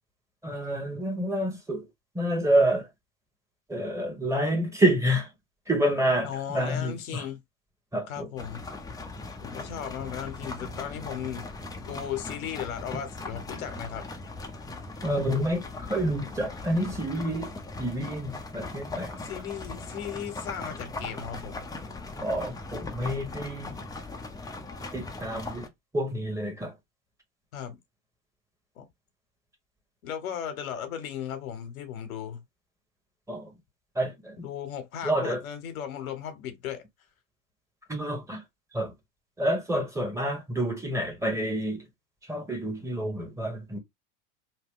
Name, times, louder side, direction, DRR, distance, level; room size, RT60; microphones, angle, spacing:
voice 1, 0.4-1.9 2.1-2.9 3.7-5.3 5.7-7.3 7.9-8.3 15.0-17.5 17.8-19.2 22.2-23.8 24.9-25.7 25.9-26.7 33.3-33.5 33.9-34.5 35.0-35.4 37.9-38.4 38.7-38.9 39.4-41.8 42.2-43.8, right 1 dB, 5° right, 1.2 m, -28 dB
voice 2, 6.2-7.4 8.1-8.6 9.4-11.5 11.8-14.1 19.2-21.6 27.5-27.8 28.8-28.9 30.0-32.4 34.4-36.8, left 9 dB, 85° left, 1.0 m, -36 dB
sound 1, 8.4-25.7, left 3 dB, 10° left, 0.6 m, -39 dB
2.9 x 2.2 x 3.6 m
hypercardioid pair, 90°, 41 cm